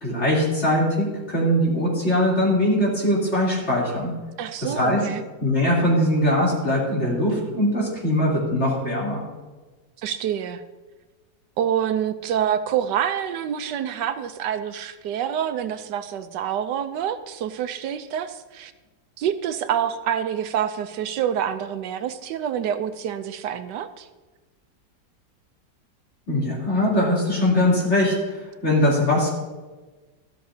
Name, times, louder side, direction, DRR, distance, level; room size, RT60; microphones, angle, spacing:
voice 1, 0.0-4.1 4.6-5.0 5.4-9.2 26.3-29.3, left 1 dB, 40° left, -5 dB, 3.5 m, -21 dB
voice 2, 4.4-5.2 10.0-10.6 11.6-18.7 19.2-24.1, right 9 dB, 80° right, 10 dB, 1.3 m, -27 dB
13.5 x 12.5 x 2.7 m, 1.3 s
omnidirectional pair, 1.8 m